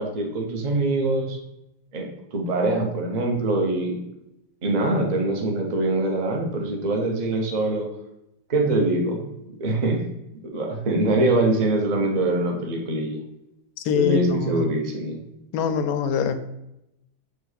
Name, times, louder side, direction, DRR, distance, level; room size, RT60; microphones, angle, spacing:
voice 1, 0.0-1.4 1.9-4.0 4.6-7.9 8.5-9.2 9.6-10.0 10.5-13.2 13.9-15.2, right 2 dB, 60° right, 2 dB, 0.4 m, -23 dB
voice 2, 13.8-14.6 15.5-16.4, left 6 dB, 80° left, 10 dB, 1.3 m, -23 dB
7.8 x 3.1 x 4.0 m, 0.88 s
omnidirectional pair, 2.2 m